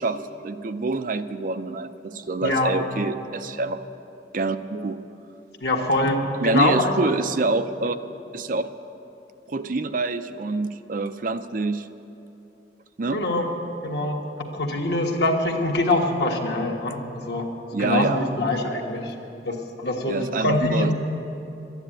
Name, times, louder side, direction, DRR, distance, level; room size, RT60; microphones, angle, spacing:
voice 1, 0.0-3.8 4.3-5.0 6.4-8.0 8.3-8.7 9.5-11.9 13.0-13.2 17.7-18.2 20.1-20.9, right 3 dB, 45° right, 10 dB, 0.5 m, -26 dB
voice 2, 2.4-2.7 5.6-6.9 13.1-13.5 13.8-17.5 17.8-19.1 19.5-20.9, left 2 dB, 60° left, 1 dB, 1.6 m, -24 dB
12.0 x 9.9 x 8.8 m, 2.8 s
head